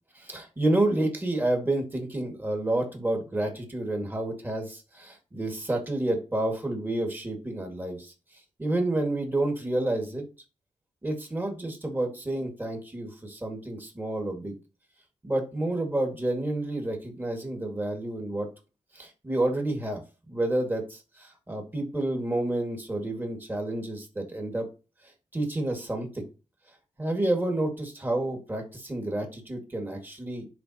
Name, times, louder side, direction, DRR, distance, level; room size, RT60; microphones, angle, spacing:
voice 1, 0.2-8.1 8.6-10.2 11.0-14.5 15.2-18.5 19.0-20.0 20.3-24.7 25.3-26.2 27.0-30.5, right 1 dB, 15° right, 2 dB, 2.1 m, -29 dB
10.5 x 4.1 x 2.9 m, 0.31 s
wide cardioid pair, 110°, 13 cm